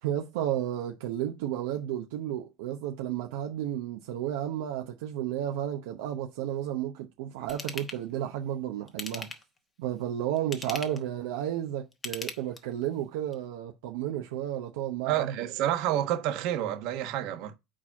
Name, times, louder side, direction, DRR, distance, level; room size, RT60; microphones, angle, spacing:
voice 1, 0.0-9.3 9.8-15.3, right 11 dB, 80° right, 0.8 m, -32 dB
Ratchet pawl / Tools, 7.5-8.0 8.9-9.6 10.4-11.1 11.9-12.8 13.3-13.4, left 4 dB, 25° left, 1.1 m, -39 dB
voice 2, 15.0-17.6, right 12 dB, 65° right, 1.2 m, -29 dB
4.9 x 4.2 x 5.9 m
supercardioid pair, 110°, 0 cm